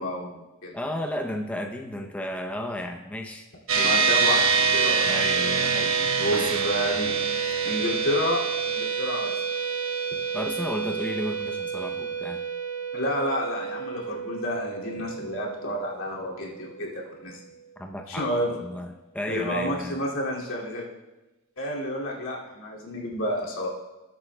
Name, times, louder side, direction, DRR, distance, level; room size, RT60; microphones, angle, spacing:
voice 1, 0.0-0.7 3.7-5.1 6.2-7.3 7.6-8.4 8.7-9.4 12.9-17.4 18.1-18.6 19.3-20.9 21.6-23.7, left 1 dB, 80° left, -3 dB, 2.4 m, -30 dB
voice 2, 0.7-3.5 3.8-4.0 5.1-6.0 6.3-6.8 10.3-12.4 17.8-20.0, left 1 dB, 5° left, 3 dB, 0.6 m, -33 dB
sound 1, 3.7-17.3, right 5 dB, 80° right, 1.1 m, -27 dB
19.5 x 8.5 x 2.2 m, 1.1 s
head